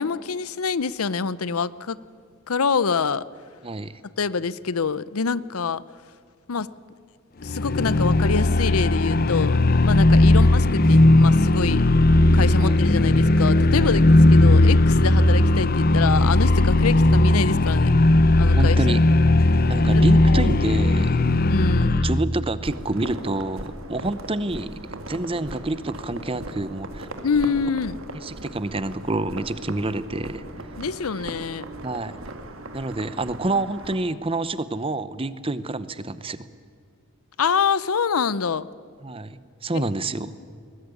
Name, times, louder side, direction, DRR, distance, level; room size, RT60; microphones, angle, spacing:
voice 1, 0.0-2.0 2.5-3.3 4.2-5.8 6.5-6.7 7.4-11.8 12.3-17.9 18.4-18.8 20.3-20.5 21.5-22.0 27.2-28.0 30.8-31.7 37.4-38.7 39.7-39.9, left 5 dB, 80° left, 18 dB, 0.7 m, -26 dB
voice 2, 3.6-4.0 10.3-10.5 12.6-12.8 13.7-13.9 18.5-19.0 19.7-21.2 21.8-24.8 25.1-27.1 28.2-30.4 31.8-32.1 32.7-36.5 39.0-40.3, right 2 dB, 25° right, 15 dB, 0.8 m, -28 dB
sound 1, 7.4-22.2, left 2 dB, 40° left, 0.7 m, -17 dB
sound 2, 22.6-34.0, right 1 dB, 70° right, 2.3 m, -38 dB
21.0 x 20.5 x 9.8 m, 2.2 s
head